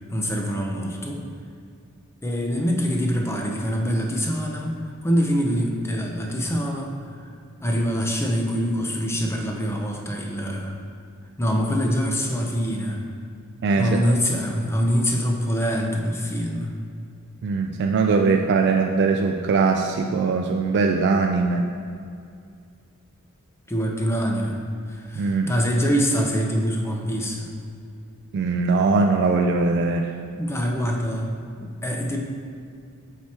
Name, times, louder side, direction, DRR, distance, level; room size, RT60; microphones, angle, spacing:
voice 1, 0.1-1.2 2.2-4.8 5.0-6.9 7.6-10.7 11.4-13.0 13.8-16.7 23.7-24.6 24.9-27.5 30.4-31.3 31.6-32.2, equal, 10° left, 1 dB, 0.6 m, -24 dB
voice 2, 13.6-14.0 17.4-21.7 25.2-25.5 28.3-30.1, right 4 dB, 50° right, 2 dB, 0.3 m, -21 dB
5.8 x 4.6 x 4.3 m, 2.3 s
head